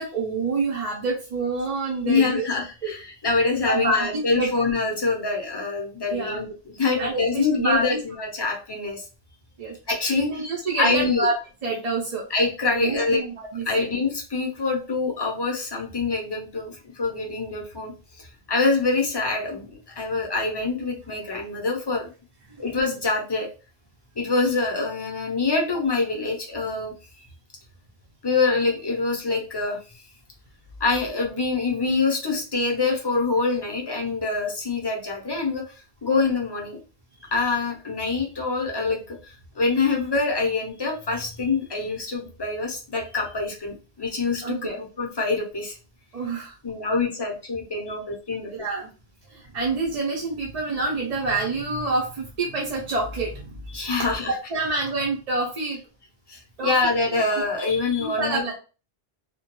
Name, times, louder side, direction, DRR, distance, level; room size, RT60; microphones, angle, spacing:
voice 1, 0.0-2.5 2.8-2.9 3.7-4.1 4.3-4.5 6.1-6.4 7.0-7.9 9.6-9.7 10.1-12.2 12.7-13.9 22.5-22.6 37.2-37.3 44.4-44.8 46.1-46.6 48.5-48.9 49.3-53.6 54.3-55.8 56.6-56.7 58.0-58.5, right 3 dB, 45° right, -3 dB, 0.6 m, -27 dB
voice 2, 2.0-9.0 9.9-10.3 10.8-11.3 12.3-13.2 13.6-22.1 22.6-23.5 24.2-27.3 28.2-30.0 30.8-36.8 37.3-45.8 46.6-48.5 53.7-54.4 56.3-58.5, left 3 dB, 30° left, 0 dB, 0.6 m, -25 dB
2.3 x 2.2 x 2.9 m, 0.34 s
omnidirectional pair, 1.1 m